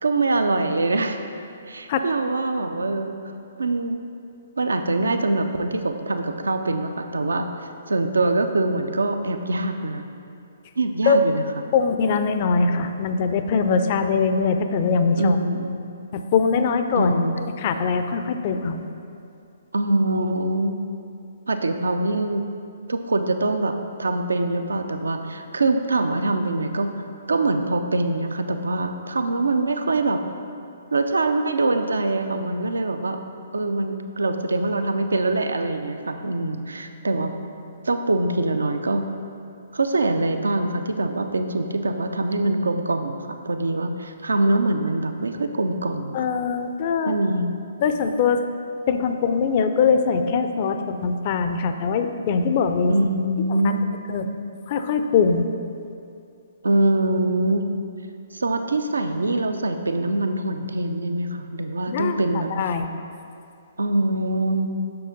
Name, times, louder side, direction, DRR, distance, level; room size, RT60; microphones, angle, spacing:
voice 1, 0.0-1.2 1.7-3.1 3.6-4.0 4.6-7.5 7.9-10.0 10.8-11.4 15.2-15.8 17.0-17.4 19.7-20.8 21.5-22.4 22.9-26.9 27.3-30.2 30.9-33.2 33.5-37.3 37.9-39.1 39.7-46.2 47.1-47.5 52.9-53.9 56.6-57.7 58.3-62.5 63.8-64.7, right 2 dB, 75° right, 7 dB, 0.5 m, -23 dB
voice 2, 11.7-15.4 16.1-18.8 46.1-47.2 47.8-48.4 48.9-53.0 53.5-53.7 54.1-54.3 54.7-55.5 61.9-62.9, left 5 dB, 40° left, 8 dB, 0.4 m, -22 dB
6.7 x 6.2 x 3.9 m, 2.5 s
figure-of-eight pair, 130°, 0 cm